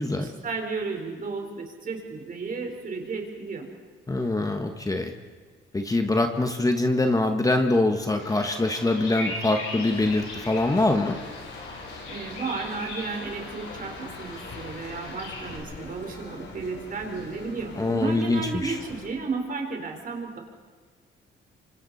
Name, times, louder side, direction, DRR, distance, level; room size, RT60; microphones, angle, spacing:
voice 1, 0.1-3.7 12.1-20.4, right 4 dB, 45° right, 2 dB, 4.5 m, -33 dB
voice 2, 4.1-5.1 5.7-11.1 17.8-18.8, left 2 dB, 15° left, 5 dB, 1.6 m, -24 dB
Bird vocalization bird call bird song, 8.2-15.6, left 2 dB, 85° left, 6.7 m, -39 dB
sound 1, 9.8-19.1, left 3 dB, 65° left, 4.6 m, -44 dB
27.5 x 25.5 x 4.3 m, 1.5 s
cardioid pair, 90°, 20 cm